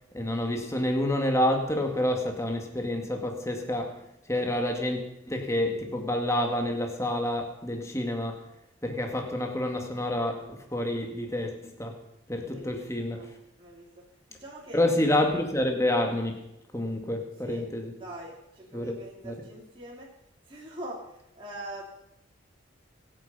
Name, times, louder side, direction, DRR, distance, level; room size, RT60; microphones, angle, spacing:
voice 1, 0.1-4.0 4.3-5.0 5.3-8.5 8.8-12.0 12.3-13.3 14.7-16.5 16.7-17.9 18.7-18.9 19.2-19.4, left 1 dB, 15° left, 3 dB, 2.0 m, -28 dB
voice 2, 12.4-13.3 13.6-14.0 14.3-15.0 17.4-17.7 18.0-20.1 20.5-21.8, right 1 dB, 25° right, -4 dB, 2.9 m, -43 dB
24.5 x 9.0 x 5.5 m, 0.84 s
head